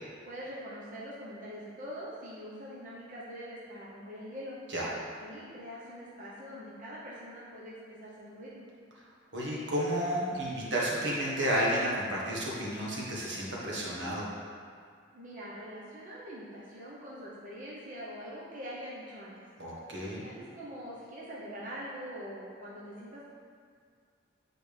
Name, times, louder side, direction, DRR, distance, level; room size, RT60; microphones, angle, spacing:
voice 1, 0.2-4.6 5.2-8.7 15.1-19.3 20.2-23.3, equal, 45° right, -7 dB, 1.0 m, -43 dB
voice 2, 9.3-14.3 19.6-20.2, equal, 80° right, -5 dB, 1.5 m, -31 dB
8.5 x 4.3 x 3.5 m, 2.1 s
head